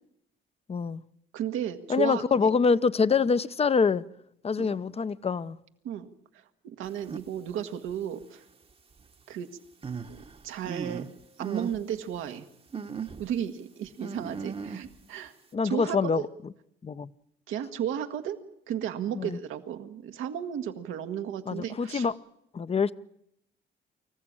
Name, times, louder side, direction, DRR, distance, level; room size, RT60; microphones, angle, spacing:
voice 1, 0.7-1.0 1.9-4.0 4.4-5.6 15.5-16.3 16.8-17.1 19.1-19.4 21.5-22.1 22.5-22.9, left 5 dB, 30° left, 0.7 m, -25 dB
voice 2, 1.3-2.2 4.6-4.8 5.8-6.1 6.3-8.4 9.3-9.6 10.1-10.2 10.4-11.0 11.4-12.5 13.2-15.3 15.6-16.1 17.5-18.4 18.7-22.1, right 9 dB, 90° right, 1.6 m, -34 dB
sound 1, 7.0-7.2 7.9-8.0 9.8-11.1 11.4-11.8 12.2-12.3 12.7-13.3 14.0-15.0, right 5 dB, 30° right, 1.1 m, -37 dB
25.0 x 15.0 x 8.8 m
cardioid pair, 90°, 20 cm